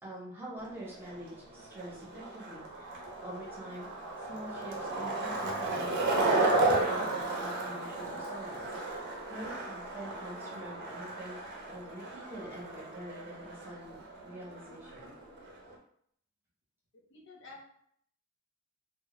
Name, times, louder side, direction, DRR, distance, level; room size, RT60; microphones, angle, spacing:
voice 1, 0.0-9.0 9.3-11.4 11.6-15.1, right 1 dB, 10° right, -6 dB, 0.7 m, -46 dB
Skateboard, 0.6-15.8, right 2 dB, 60° right, 0.5 m, -34 dB
voice 2, 17.1-17.6, left 3 dB, 65° left, -2 dB, 0.7 m, -50 dB
2.0 x 2.0 x 2.9 m, 0.66 s
head